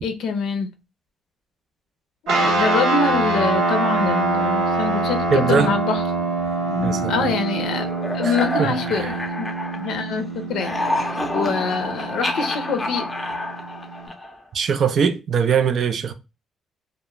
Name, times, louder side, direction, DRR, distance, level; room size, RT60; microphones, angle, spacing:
voice 1, 0.0-0.7 2.3-6.0 7.1-7.9 8.1-9.5 9.8-10.2 10.5-10.8 11.3-13.1, left 5 dB, 80° left, 0.5 m, -25 dB
sound 1, 2.3-14.1, right 2 dB, 85° right, 0.8 m, -25 dB
voice 2, 5.3-5.7 6.8-7.3 8.2-9.1 14.5-16.1, right 6 dB, 55° right, 0.4 m, -22 dB
sound 2, 6.6-10.1 10.4-14.5, left 1 dB, 20° left, 0.5 m, -28 dB
2.3 x 2.0 x 3.0 m
cardioid pair, 90°, 0 cm